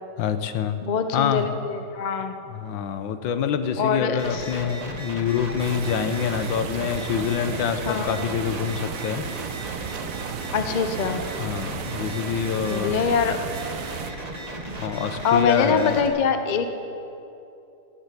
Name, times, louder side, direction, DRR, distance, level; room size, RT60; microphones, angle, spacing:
voice 1, 0.2-0.8 1.1-1.5 2.5-9.2 11.4-13.0 14.8-16.0, left 8 dB, 85° left, 10 dB, 1.6 m, -26 dB
voice 2, 0.8-2.3 3.8-4.4 7.9-8.3 10.5-11.2 12.6-13.4 15.2-16.7, left 6 dB, 50° left, 8 dB, 0.5 m, -24 dB
sound 1, 4.2-16.1, right 2 dB, 25° right, 1.1 m, -35 dB
sound 2, 5.6-14.1, right 9 dB, 65° right, 0.8 m, -35 dB
18.0 x 7.9 x 8.3 m, 2.8 s
omnidirectional pair, 2.0 m